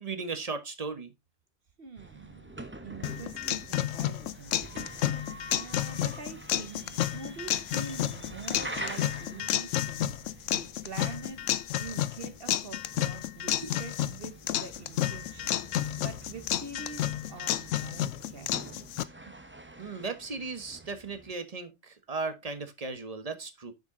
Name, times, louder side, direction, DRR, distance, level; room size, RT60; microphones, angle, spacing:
voice 1, 0.0-1.1 13.6-13.7 19.8-23.7, right 4 dB, 30° right, 1.1 m, -36 dB
voice 2, 1.8-5.3 5.5-10.2 10.5-11.4 11.8-15.6 16.0-18.9 19.3-19.4, right 4 dB, 50° right, 1.1 m, -45 dB
sound 1, 2.0-21.3, right 2 dB, 10° right, 0.7 m, -46 dB
sound 2, 3.0-19.0, left 12 dB, 90° left, 1.0 m, -31 dB
7.1 x 6.6 x 3.6 m
omnidirectional pair, 1.3 m